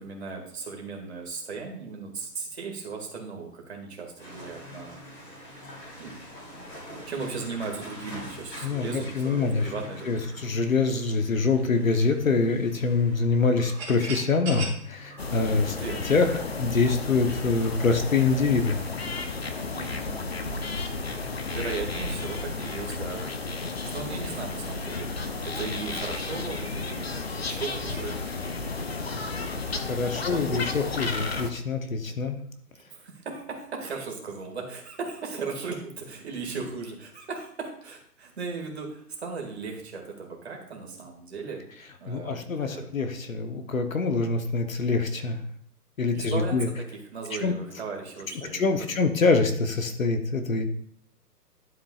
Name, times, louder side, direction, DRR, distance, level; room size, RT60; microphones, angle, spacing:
voice 1, 0.0-5.0 6.0-6.2 7.1-10.3 15.7-16.0 19.7-20.6 21.5-23.2 23.8-28.2 30.1-30.7 32.9-41.6 42.0-42.9 46.1-46.6 47.1-48.9, right 4 dB, 40° right, 0 dB, 2.3 m, -37 dB
sound 1, 4.2-21.3, left 1 dB, 20° left, 3.8 m, -46 dB
voice 2, 8.6-9.7 10.1-15.8 16.1-18.8 29.7-32.4 42.1-45.4 46.0-46.7 47.4-47.5 48.3-50.7, left 4 dB, 55° left, 7 dB, 1.1 m, -25 dB
sound 2, 13.6-16.3, right 3 dB, 10° right, 1.5 m, -38 dB
sound 3, 15.2-31.5, left 3 dB, 40° left, 0.7 m, -33 dB
12.0 x 7.5 x 2.4 m, 0.63 s
hypercardioid pair, 165°, 48 cm